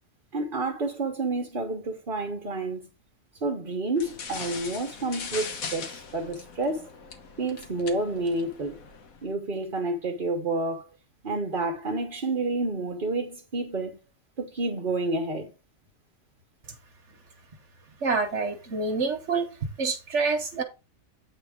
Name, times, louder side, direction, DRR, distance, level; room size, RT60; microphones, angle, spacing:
voice 1, 0.3-2.9 3.4-6.9 7.4-8.8 9.2-10.9 11.2-14.0 14.4-15.5, right 2 dB, 40° right, 1.3 m, -29 dB
sound 1, 4.0-9.2, left 5 dB, 85° left, 1.6 m, -40 dB
voice 2, 18.0-19.5 19.8-20.6, right 4 dB, 60° right, 1.4 m, -27 dB
8.7 x 3.6 x 5.0 m
omnidirectional pair, 1.4 m